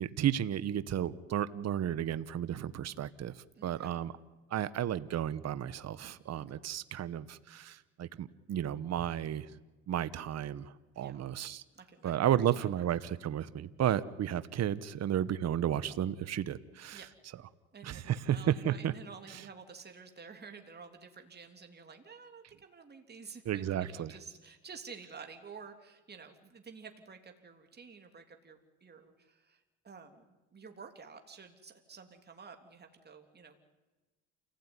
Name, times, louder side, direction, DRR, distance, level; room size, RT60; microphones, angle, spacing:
voice 1, 0.0-4.1 4.5-9.5 9.9-11.6 12.0-17.0 17.8-18.9 19.3-19.4 23.5-24.1, right 10 dB, 55° right, 15 dB, 1.1 m, -33 dB
voice 2, 3.5-4.0 6.3-6.4 11.0-11.2 11.7-12.4 12.8-12.9 16.9-17.1 17.7-30.2 30.5-33.6, right 5 dB, 35° right, 5 dB, 3.2 m, -51 dB
28.5 x 17.0 x 9.8 m, 1.2 s
cardioid pair, 80°, 30 cm